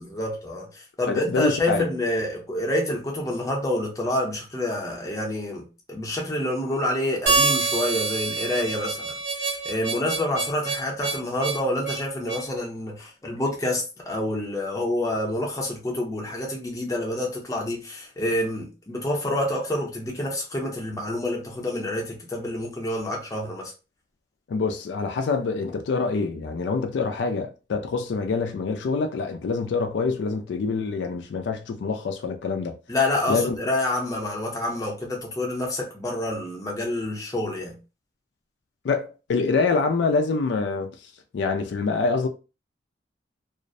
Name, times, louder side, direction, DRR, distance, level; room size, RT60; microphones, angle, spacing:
voice 1, 0.0-23.7 32.9-37.8, left 1 dB, 20° left, 0.6 m, -28 dB
voice 2, 1.1-1.9 24.5-32.8 33.3-33.6 38.8-40.9 41.3-42.3, left 4 dB, 75° left, 0.3 m, -25 dB
Harmonica, 7.3-12.5, right 4 dB, 75° right, 1.1 m, -26 dB
2.4 x 2.0 x 2.5 m
head